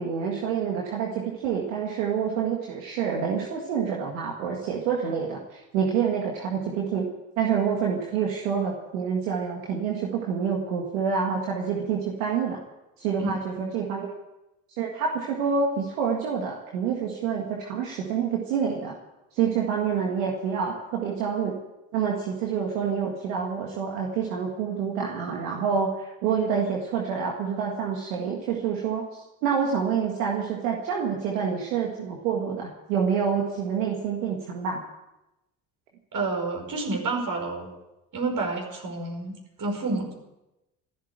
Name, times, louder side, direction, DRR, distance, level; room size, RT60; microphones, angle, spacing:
voice 1, 0.0-7.1 7.4-12.6 13.0-14.1 14.8-18.9 19.3-21.6 21.9-34.8, right 6 dB, 90° right, -1 dB, 1.9 m, -27 dB
voice 2, 13.2-13.8 36.1-37.7 38.1-40.1, right 3 dB, 60° right, 2 dB, 5.4 m, -30 dB
14.5 x 12.0 x 8.1 m, 0.97 s
hypercardioid pair, 50°, 38 cm